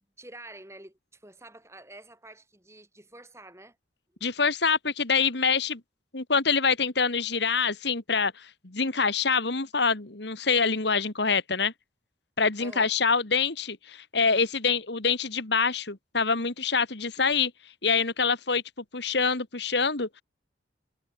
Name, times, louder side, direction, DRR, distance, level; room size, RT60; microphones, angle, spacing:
voice 1, 0.2-3.8 12.6-12.9, right 2 dB, 15° right, 7.9 m, -48 dB
voice 2, 4.2-5.8 6.1-11.7 12.4-17.5 17.8-18.6 18.9-20.2, left 5 dB, 60° left, 1.9 m, -25 dB
head